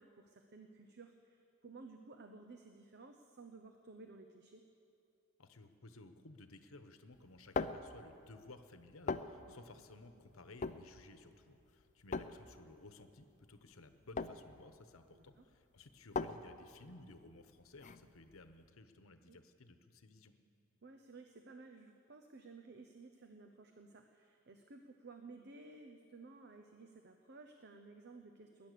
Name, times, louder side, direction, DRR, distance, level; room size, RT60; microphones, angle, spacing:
voice 1, 0.0-4.6 9.4-9.6 15.1-15.4 19.3-19.4 20.8-28.7, right 3 dB, 50° right, 5 dB, 0.8 m, -56 dB
voice 2, 5.4-20.3, left 2 dB, 80° left, 9 dB, 1.0 m, -57 dB
sound 1, 7.1-18.7, left 4 dB, 35° left, 0.5 m, -43 dB
20.0 x 10.0 x 6.8 m, 2.6 s
head